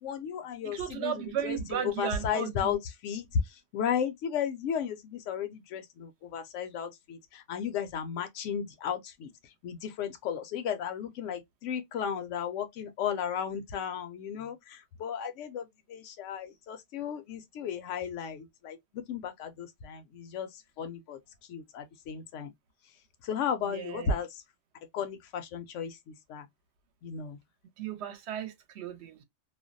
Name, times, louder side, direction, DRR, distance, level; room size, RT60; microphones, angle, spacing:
voice 1, 0.0-9.3 9.6-21.2 21.5-22.5 23.2-24.4 24.9-26.5 27.0-27.4, left 7 dB, 85° left, 0.9 m, -34 dB
voice 2, 0.6-2.8 23.7-24.2 27.8-29.2, right 9 dB, 70° right, 0.8 m, -35 dB
2.5 x 2.1 x 2.5 m
omnidirectional pair, 1.2 m